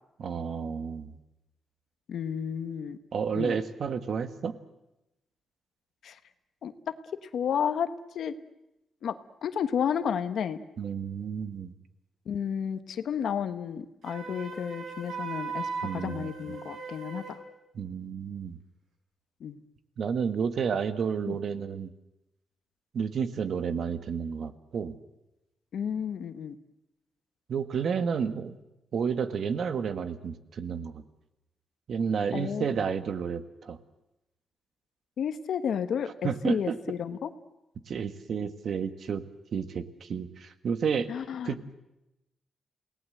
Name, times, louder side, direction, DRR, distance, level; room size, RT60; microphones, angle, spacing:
voice 1, 0.2-1.2 3.1-4.5 10.8-11.7 15.8-16.3 17.7-18.6 20.0-21.9 22.9-25.0 27.5-28.6 28.9-31.0 31.9-33.8 36.2-36.8 37.9-39.2 39.5-41.1 41.4-41.7, right 6 dB, 55° right, 11 dB, 1.5 m, -31 dB
voice 2, 2.1-3.0 3.3-3.6 6.0-6.2 6.6-6.9 7.2-8.4 9.0-9.1 9.4-10.6 12.3-17.4 19.4-19.6 21.3-21.4 25.7-26.6 32.3-32.7 35.2-37.3 41.1-41.5, left 8 dB, 70° left, 10 dB, 1.1 m, -32 dB
Wind instrument woodwind instrument, 14.0-17.5, right 5 dB, 75° right, 4.3 m, -38 dB
28.5 x 18.0 x 7.9 m, 0.92 s
wide cardioid pair, 140°, 0 cm